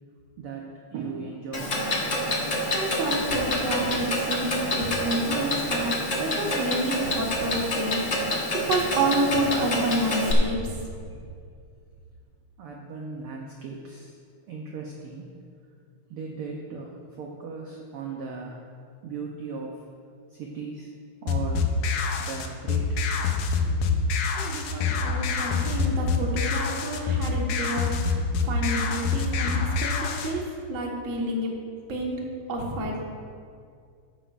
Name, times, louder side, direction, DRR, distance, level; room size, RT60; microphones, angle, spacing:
voice 1, 0.4-2.1 12.6-14.2 14.5-15.3 16.1-18.6 19.0-19.8 20.3-20.9 21.2-21.8 22.2-23.0, right 4 dB, 70° right, 0 dB, 1.3 m, -37 dB
Clock, 1.5-10.3, left 1 dB, 55° left, 0.8 m, -28 dB
voice 2, 2.7-10.6 24.4-31.5 31.9-32.2 32.5-33.0, right 1 dB, 35° right, -2 dB, 1.3 m, -29 dB
sound 1, 21.3-30.3, left 4 dB, 80° left, 2.1 m, -26 dB
14.0 x 10.5 x 2.5 m, 2.3 s
omnidirectional pair, 3.4 m